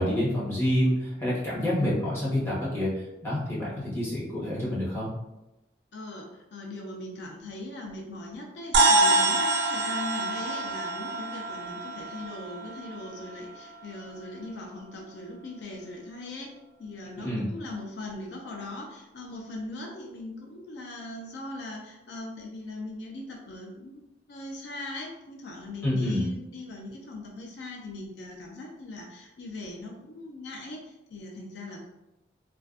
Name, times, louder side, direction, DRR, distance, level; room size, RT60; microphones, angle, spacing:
voice 1, 0.0-5.1 17.2-17.4 25.8-26.2, left 1 dB, 15° left, -8 dB, 0.8 m, -27 dB
voice 2, 1.5-1.9 5.9-24.0 24.3-31.9, left 2 dB, 70° left, -1 dB, 0.4 m, -40 dB
sound 1, 8.7-13.3, right 2 dB, 85° right, 0.4 m, -25 dB
2.4 x 2.2 x 2.3 m, 0.96 s
head